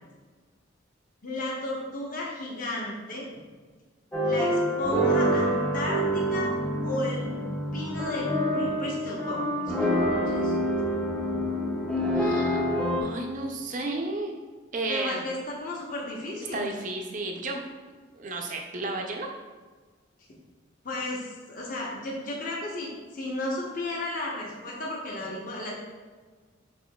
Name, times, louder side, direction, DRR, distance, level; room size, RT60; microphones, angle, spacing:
voice 1, 1.2-3.3 4.2-6.5 6.8-7.3 7.7-10.5 14.9-16.7 20.8-25.8, left 1 dB, 45° left, -3 dB, 0.8 m, -34 dB
sound 1, 4.1-13.0, equal, 5° left, 0.5 m, -26 dB
voice 2, 12.1-12.7 13.0-14.3 14.7-15.3 16.5-17.6 18.1-19.3, right 2 dB, 40° right, 2 dB, 0.5 m, -32 dB
6.5 x 3.5 x 2.3 m, 1.4 s
head